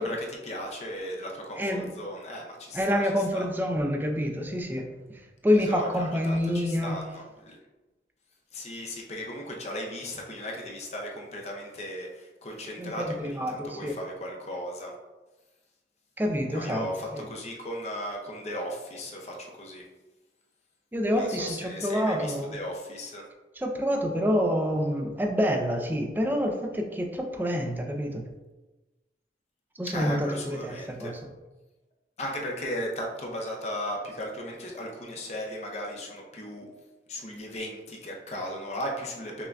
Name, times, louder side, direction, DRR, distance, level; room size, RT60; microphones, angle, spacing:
voice 1, 0.0-3.0 3.3-3.5 5.6-7.6 8.5-14.9 16.5-19.8 21.2-23.2 29.9-31.1 32.2-36.7 37.1-39.5, equal, 40° left, 0 dB, 0.6 m, -36 dB
voice 2, 1.6-1.9 2.7-7.0 12.8-14.0 16.2-16.9 17.1-17.3 20.9-22.6 23.6-28.2 29.8-31.1, equal, 10° right, 3 dB, 0.4 m, -27 dB
5.6 x 2.1 x 2.5 m, 1.1 s
head